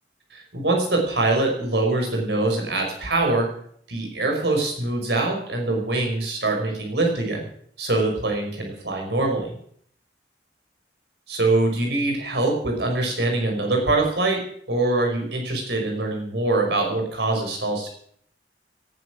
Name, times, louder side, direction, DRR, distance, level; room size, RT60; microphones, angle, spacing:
voice 1, 0.3-3.5 3.9-7.5 7.8-9.5 11.3-14.4 14.7-17.9, right 2 dB, 65° right, 1 dB, 5.2 m, -23 dB
18.5 x 11.0 x 6.1 m, 0.62 s
head